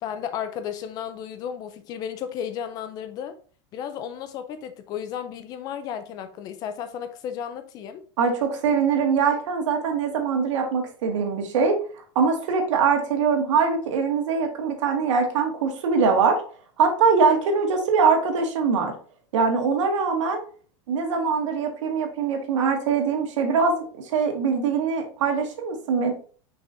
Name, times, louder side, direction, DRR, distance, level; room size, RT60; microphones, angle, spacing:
voice 1, 0.0-3.4 3.7-8.0, left 8 dB, 25° left, 0.5 m, -33 dB
voice 2, 8.2-11.8 12.2-16.4 16.8-18.9 19.3-20.4 20.9-26.1, right 5 dB, 80° right, 1.9 m, -22 dB
6.6 x 5.4 x 2.7 m
supercardioid pair, 170°, 15 cm